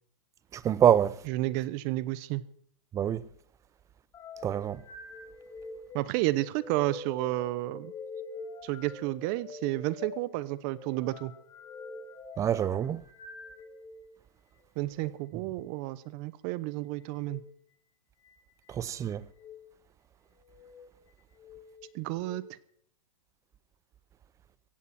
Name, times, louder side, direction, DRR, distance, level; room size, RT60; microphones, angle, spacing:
voice 1, 0.6-1.1 2.9-3.2 4.4-4.8 12.4-13.0 18.8-19.2, right 9 dB, 15° right, 0.7 m, -25 dB
voice 2, 1.2-2.4 5.9-7.9 8.6-11.3 14.8-17.4 21.9-22.5, right 18 dB, 40° right, 1.1 m, -31 dB
sound 1, 4.1-14.1 14.8-15.1 17.1-17.4 18.2-18.8 19.3-19.6 20.4-20.9 21.4-22.4, left 3 dB, 20° left, 2.8 m, -46 dB
16.5 x 16.0 x 4.4 m
hypercardioid pair, 140°, 17 cm